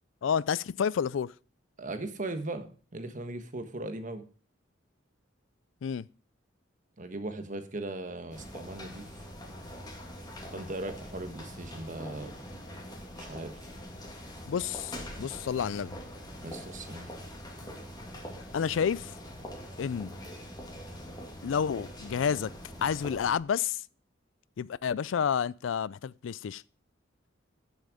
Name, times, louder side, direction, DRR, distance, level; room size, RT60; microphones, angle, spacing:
voice 1, 0.2-1.3 5.8-6.1 14.5-16.0 18.5-19.1 19.8-20.1 21.4-22.5 22.8-23.8 24.6-26.6, left 7 dB, 85° left, 0.4 m, -30 dB
voice 2, 1.8-4.2 7.0-9.0 10.5-12.4 13.2-13.6 16.4-17.1, right 2 dB, 45° right, 1.3 m, -38 dB
sound 1, 8.3-23.4, equal, 20° left, 2.2 m, -43 dB
9.2 x 7.3 x 5.1 m
head